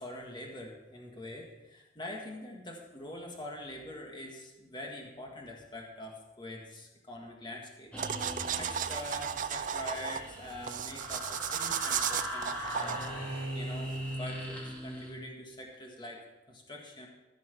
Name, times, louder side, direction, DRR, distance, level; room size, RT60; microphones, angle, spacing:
voice 1, 0.0-7.9 8.6-13.0 13.5-17.1, left 1 dB, 25° left, 0 dB, 1.7 m, -44 dB
sound 1, 7.9-15.1, equal, 5° left, 2.3 m, -39 dB
sound 2, 8.0-14.2, right 8 dB, 45° right, 0.5 m, -36 dB
15.0 x 6.1 x 5.9 m, 1.0 s
head